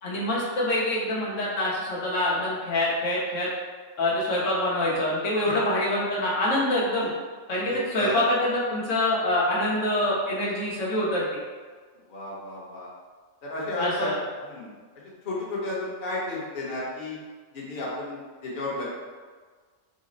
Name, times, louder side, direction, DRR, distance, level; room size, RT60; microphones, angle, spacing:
voice 1, 0.0-3.5 4.0-7.1 7.5-11.3 13.8-14.2, left 1 dB, 75° left, -6 dB, 1.2 m, -25 dB
voice 2, 7.6-8.2 12.1-12.9 13.4-14.1 14.4-14.8 15.0-17.2 17.5-18.9, left 1 dB, 45° left, -6 dB, 1.0 m, -33 dB
4.0 x 2.0 x 3.8 m, 1.5 s
omnidirectional pair, 1.3 m